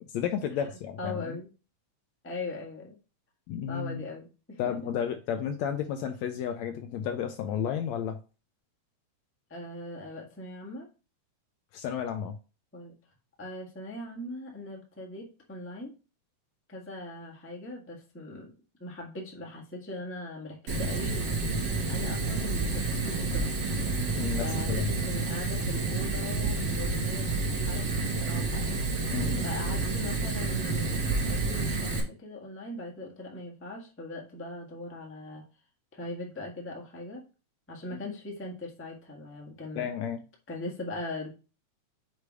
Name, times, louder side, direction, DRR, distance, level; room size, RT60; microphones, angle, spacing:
voice 1, 0.1-1.4 3.5-4.0 4.6-8.2 11.7-12.4 24.1-24.9 29.1-29.5 39.8-40.2, left 8 dB, 80° left, 1.6 m, -32 dB
voice 2, 1.0-1.5 2.2-3.0 3.7-4.8 9.5-10.9 12.7-12.9 13.4-15.9 16.7-18.5 18.8-21.5 21.9-23.6 24.4-28.7 29.4-35.4 35.9-37.2 37.7-39.9 40.5-41.3, left 2 dB, 10° left, 0.5 m, -40 dB
Fire, 20.7-32.0, right 3 dB, 45° right, 1.8 m, -29 dB
6.6 x 3.1 x 4.8 m
omnidirectional pair, 3.5 m